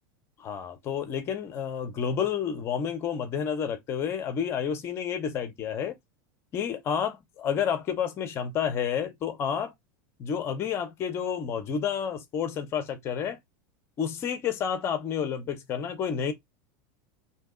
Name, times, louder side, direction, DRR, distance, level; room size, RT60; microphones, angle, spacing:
voice 1, 0.4-5.9 6.5-9.7 10.2-13.4 14.0-16.3, left 7 dB, 25° left, 0.6 m, -30 dB
2.8 x 2.7 x 3.6 m
supercardioid pair, 175°, 11 cm